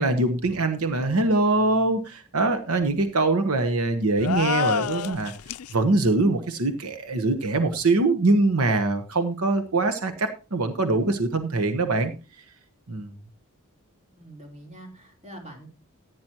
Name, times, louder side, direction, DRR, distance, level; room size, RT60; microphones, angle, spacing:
voice 1, 0.0-5.3 5.7-12.4 12.9-13.1, right 2 dB, 85° right, 9 dB, 1.1 m, -23 dB
sound 1, 4.2-5.7, left 8 dB, 90° left, 0.4 m, -27 dB
voice 2, 14.0-15.7, right 1 dB, 30° right, 1 dB, 3.6 m, -44 dB
15.0 x 9.5 x 3.0 m, 0.31 s
head